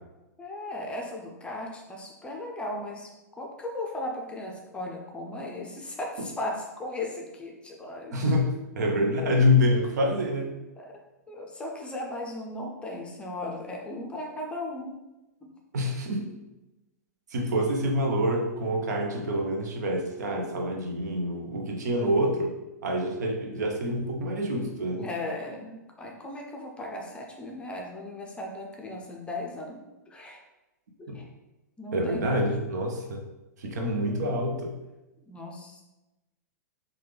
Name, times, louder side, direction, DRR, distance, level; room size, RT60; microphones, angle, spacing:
voice 1, 0.4-8.3 10.8-11.0 11.3-15.0 15.4-15.5 25.0-30.4 31.0-31.3 31.8-32.5 35.3-35.8, left 1 dB, 10° left, 0 dB, 0.5 m, -37 dB
voice 2, 8.1-10.5 15.7-16.3 17.3-22.5 22.8-25.0 31.1-31.2 31.9-33.2 33.6-34.7, left 1 dB, 75° right, 2 dB, 0.6 m, -26 dB
3.3 x 2.3 x 3.2 m, 1.0 s
hypercardioid pair, 110°, 9 cm